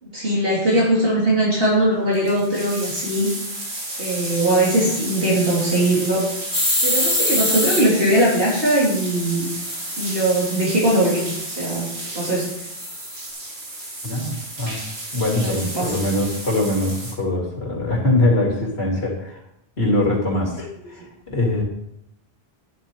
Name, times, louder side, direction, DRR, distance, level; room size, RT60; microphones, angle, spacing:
voice 1, 0.0-3.3 4.0-6.2 6.8-9.5 10.0-11.9 12.1-12.7 15.4-15.9 20.8-20.9, right 1 dB, 65° right, -6 dB, 3.0 m, -20 dB
sound 1, 1.8-1.9 2.0-17.1, right 1 dB, 85° right, 2.7 m, -32 dB
sound 2, 6.5-7.8 9.6-10.7 12.8-13.3, left 1 dB, 30° left, 2.9 m, -23 dB
voice 2, 14.0-14.8 15.1-19.4 19.8-21.0 21.3-21.6, left 1 dB, 80° left, -2 dB, 3.3 m, -22 dB
10.5 x 10.0 x 4.5 m, 0.81 s
omnidirectional pair, 1.0 m